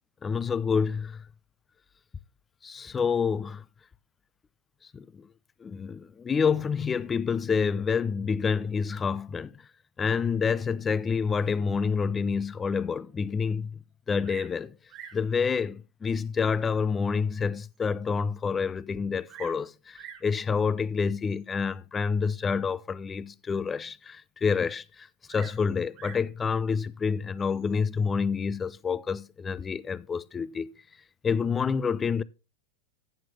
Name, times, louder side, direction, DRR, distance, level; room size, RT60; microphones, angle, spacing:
voice 1, 0.2-1.2 2.6-3.6 4.9-5.3 5.6-9.5 10.0-13.8 14.1-14.7 15.1-30.7 31.2-32.2, left 5 dB, 20° left, 0.5 m, -28 dB
Bird vocalization bird call bird song, 14.2-14.6 14.9-15.3 16.1-16.2 16.8-16.9 17.4-17.5 17.7-17.8 18.9-19.6 19.9-20.3 21.3-21.6 25.3-26.3 27.4-27.8, right 9 dB, 35° right, 1.8 m, -47 dB
14.5 x 7.6 x 3.2 m
figure-of-eight pair, 90°, 0 cm